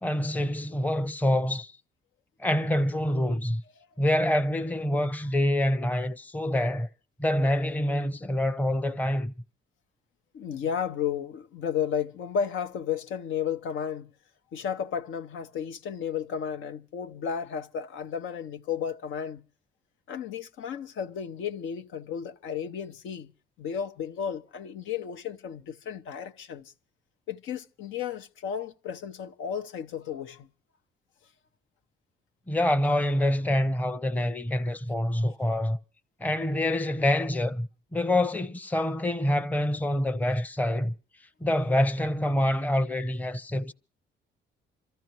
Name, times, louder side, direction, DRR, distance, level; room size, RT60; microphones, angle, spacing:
voice 1, 0.0-1.7 2.4-3.6 4.0-6.9 7.2-9.3 32.5-35.8 36.2-40.9 41.4-43.7, left 1 dB, 10° left, 0.7 m, -26 dB
voice 2, 10.3-14.1 14.5-19.4 20.1-23.3 23.6-26.7 27.3-30.5, left 8 dB, 85° left, 0.8 m, -33 dB
27.0 x 14.0 x 2.9 m
cardioid pair, 90°, 20 cm